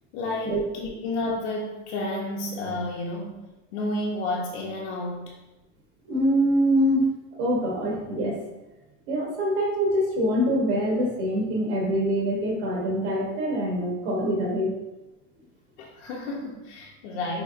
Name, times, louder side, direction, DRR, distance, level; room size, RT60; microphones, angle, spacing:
voice 1, 0.1-3.4 3.7-5.4 15.8-17.4, left 2 dB, 85° left, -1 dB, 0.8 m, -31 dB
voice 2, 6.1-7.1 7.4-8.4 9.1-14.7, equal, 80° right, -1 dB, 1.2 m, -24 dB
5.2 x 3.4 x 2.5 m, 1.0 s
supercardioid pair, 150°, 34 cm